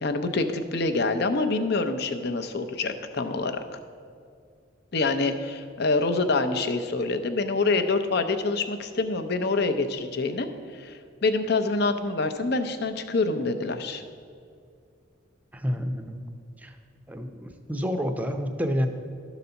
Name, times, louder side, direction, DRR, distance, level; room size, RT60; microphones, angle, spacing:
voice 1, 0.0-3.6 4.9-10.5 10.7-14.0, left 3 dB, 55° left, 7 dB, 0.6 m, -26 dB
voice 2, 15.5-16.2 16.6-16.8 17.1-18.9, equal, 10° right, 6 dB, 0.6 m, -29 dB
12.0 x 4.1 x 6.9 m, 2.2 s
head